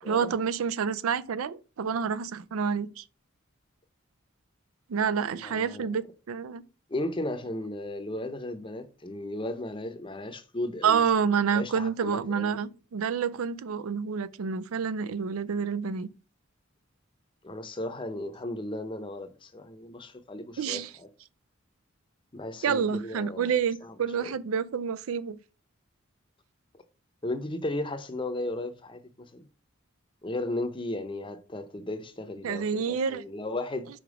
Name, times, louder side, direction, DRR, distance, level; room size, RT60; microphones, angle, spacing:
voice 1, 0.0-3.0 4.9-6.6 10.8-16.1 20.6-20.9 22.6-25.4 32.4-33.2, right 6 dB, 85° right, 0.4 m, -28 dB
voice 2, 5.3-6.0 6.9-11.0 11.5-12.6 17.4-21.1 22.3-23.5 23.8-24.3 27.2-29.5 30.2-33.9, left 1 dB, 25° left, 0.7 m, -35 dB
5.1 x 4.6 x 4.9 m
head